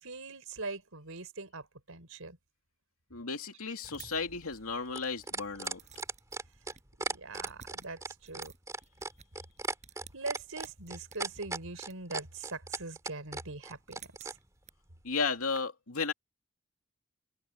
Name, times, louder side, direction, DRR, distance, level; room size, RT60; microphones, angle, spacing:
voice 1, 0.0-2.4 7.0-8.5 10.1-14.4, right 3 dB, 75° right, 4.5 m, -42 dB
voice 2, 3.1-5.8 15.0-16.1, left 4 dB, 85° left, 2.7 m, -34 dB
sound 1, 3.8-14.4 15.6-15.7, right 3 dB, 15° right, 2.8 m, -37 dB
sound 2, 3.8-5.1 5.6-6.8 7.3-12.0 13.8-14.7, right 7 dB, 30° right, 7.7 m, -55 dB
open air
head